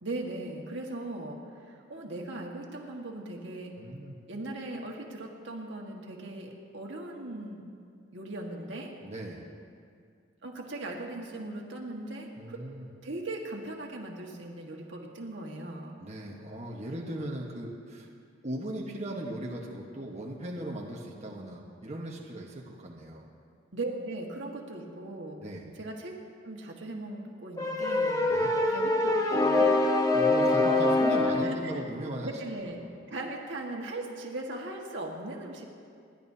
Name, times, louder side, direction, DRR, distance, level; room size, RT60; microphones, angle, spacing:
voice 1, 0.0-3.7 4.3-7.6 8.1-8.9 10.4-12.6 13.0-16.0 23.7-25.4 25.8-26.1 26.4-28.2 28.7-29.7 31.3-31.8 32.2-32.8 33.1-35.6, right 2 dB, 70° right, 0 dB, 1.7 m, -39 dB
voice 2, 3.8-4.1 9.0-9.4 12.4-12.9 16.0-18.1 18.4-23.3 25.4-25.7 28.3-28.5 30.1-32.3, right 1 dB, 35° right, -2 dB, 1.3 m, -38 dB
sound 1, 27.6-31.6, left 2 dB, 20° left, 1.0 m, -24 dB
28.5 x 11.0 x 2.8 m, 2.3 s
head